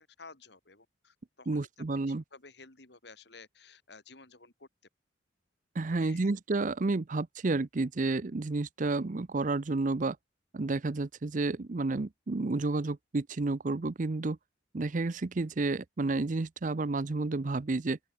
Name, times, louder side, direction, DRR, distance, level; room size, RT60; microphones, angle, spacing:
voice 1, 0.0-1.7 2.1-4.7 5.9-6.3, left 4 dB, 60° left, 3.1 m, -53 dB
voice 2, 1.5-2.2 5.7-10.2 10.5-14.4 14.7-18.0, right 3 dB, 45° right, 0.6 m, -31 dB
open air
head